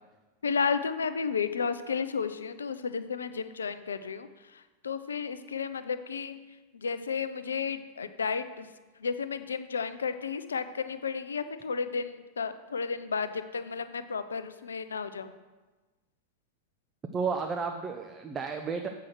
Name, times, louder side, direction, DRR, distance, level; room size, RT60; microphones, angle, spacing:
voice 1, 0.4-4.3 4.8-6.3 6.7-8.7 9.0-15.3, left 5 dB, 70° left, 12 dB, 0.5 m, -32 dB
voice 2, 17.1-18.9, right 5 dB, 20° right, 5 dB, 0.6 m, -32 dB
7.6 x 5.7 x 6.3 m, 1.2 s
figure-of-eight pair, 90°, 0 cm